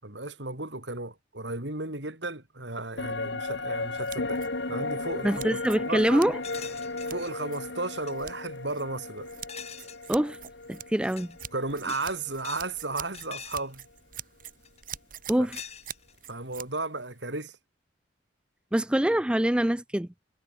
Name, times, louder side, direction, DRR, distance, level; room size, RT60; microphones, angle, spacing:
voice 1, 0.0-4.4 4.7-5.6 5.9-6.2 7.1-9.3 11.5-13.8 16.3-17.6, right 2 dB, 75° right, 5.7 m, -34 dB
sound 1, 3.0-12.5 12.8-12.9, left 3 dB, 80° left, 2.4 m, -35 dB
sound 2, 3.7-16.7, right 10 dB, 50° right, 4.8 m, -46 dB
voice 2, 5.2-6.4 10.1-10.4 10.7-11.4 15.3-15.6 18.7-20.1, right 1 dB, 5° right, 0.4 m, -25 dB
sound 3, 6.4-7.3 7.8-8.1 9.5-10.1 10.9-11.4 11.8-12.7 13.0-13.7 14.6-15.0 15.5-16.2, left 8 dB, 35° left, 3.1 m, -44 dB
head